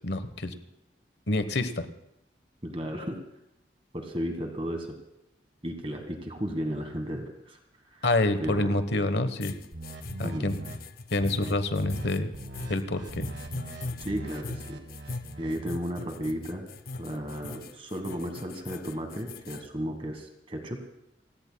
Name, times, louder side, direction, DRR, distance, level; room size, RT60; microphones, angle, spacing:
voice 1, 0.0-0.5 1.3-1.9 8.0-9.5 10.2-10.5 11.1-12.3 12.7-13.3, left 2 dB, 70° left, 10 dB, 1.1 m, -27 dB
voice 2, 2.6-3.2 3.9-5.0 5.6-7.6 7.9-8.1 8.4-8.8 10.2-10.6 14.0-14.8 15.4-16.6 17.0-20.8, equal, 30° right, 4 dB, 1.5 m, -34 dB
sound 1, 9.4-19.7, left 3 dB, 50° left, 0.6 m, -41 dB
sound 2, 9.7-10.8 11.2-11.5 11.8-12.1 12.3-15.6, right 2 dB, 75° right, 1.6 m, -41 dB
29.0 x 17.0 x 2.3 m, 0.82 s
head